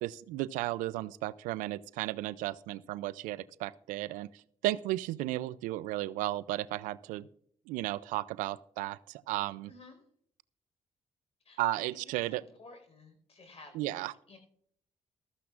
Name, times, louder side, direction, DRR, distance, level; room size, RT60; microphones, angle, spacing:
voice 1, 0.0-4.3 4.6-7.3 7.7-9.7 11.6-12.4 13.7-14.1, right 16 dB, 85° right, 18 dB, 0.4 m, -34 dB
voice 2, 9.7-10.0 11.4-14.4, left 2 dB, 50° left, 5 dB, 4.7 m, -55 dB
15.0 x 13.5 x 2.5 m, 0.65 s
supercardioid pair, 55°, 13 cm